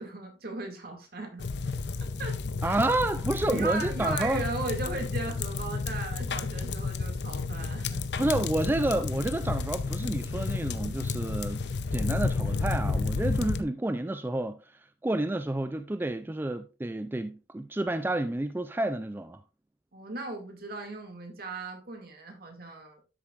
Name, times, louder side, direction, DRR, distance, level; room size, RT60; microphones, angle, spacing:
voice 1, 0.0-1.5 2.0-2.8 3.5-8.0 19.9-23.0, right 2 dB, 55° right, 2.2 m, -37 dB
sound 1, 1.4-13.6, left 4 dB, 70° left, 0.7 m, -31 dB
voice 2, 2.6-4.4 8.2-11.6 11.9-19.4, right 1 dB, 10° right, 0.4 m, -30 dB
12.5 x 6.8 x 2.5 m
head